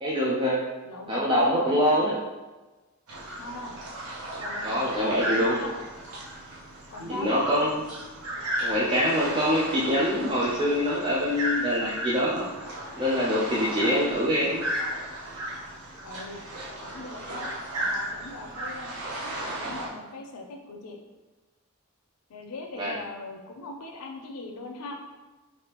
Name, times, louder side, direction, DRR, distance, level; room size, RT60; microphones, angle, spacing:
voice 1, 0.0-0.7 1.1-2.2 4.6-5.6 7.0-7.8 8.6-12.5 13.0-14.7 22.8-22.9, equal, 25° right, -6 dB, 0.4 m, -24 dB
voice 2, 0.9-2.0 3.4-3.7 4.4-5.7 6.9-7.7 14.1-14.5 16.0-16.4 16.8-18.9 19.4-21.0 22.3-24.9, left 2 dB, 85° left, 2 dB, 0.5 m, -40 dB
sound 1, 3.1-19.9, equal, 85° right, 0.8 m, -35 dB
3.3 x 2.7 x 2.9 m, 1.2 s
head